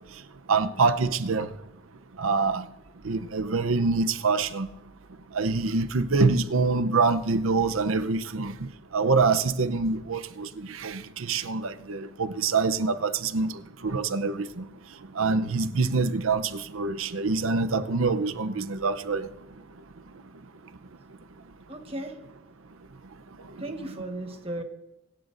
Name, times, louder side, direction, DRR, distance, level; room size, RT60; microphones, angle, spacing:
voice 1, 0.5-1.5 2.2-2.7 3.0-4.7 5.3-8.6 8.9-14.6 15.2-19.3, right 4 dB, 85° right, 0.7 m, -25 dB
voice 2, 21.7-22.2 23.6-24.6, right 1 dB, 30° right, 1.3 m, -35 dB
25.0 x 11.5 x 2.6 m
head